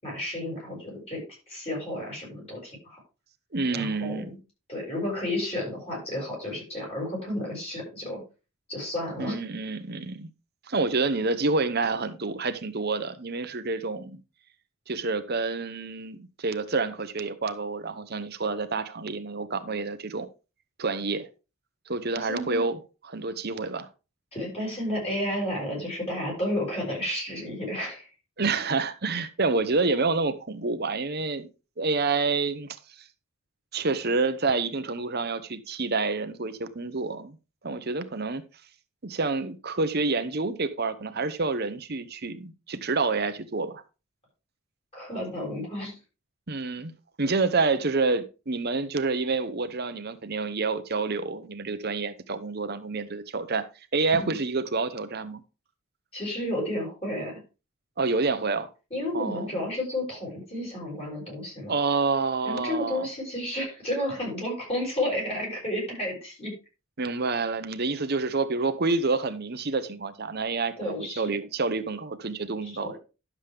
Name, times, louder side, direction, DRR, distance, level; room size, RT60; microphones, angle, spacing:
voice 1, 0.0-3.0 3.7-4.4 4.7-8.2 8.7-9.4 22.1-22.6 24.3-28.1 44.9-46.0 54.2-54.4 56.1-57.4 58.9-61.7 62.4-66.5 70.8-71.2 72.6-72.9, left 1 dB, 30° left, 6.6 m, -32 dB
voice 2, 3.5-4.3 9.2-10.3 10.7-14.2 14.9-20.3 20.8-21.3 21.9-23.9 28.4-31.5 31.8-32.7 33.7-37.4 37.6-38.4 39.0-43.8 46.5-46.9 47.2-53.6 53.9-55.4 58.0-58.7 59.1-59.5 61.7-63.1 67.0-73.0, right 3 dB, 45° right, 0.9 m, -28 dB
11.5 x 7.3 x 3.5 m
head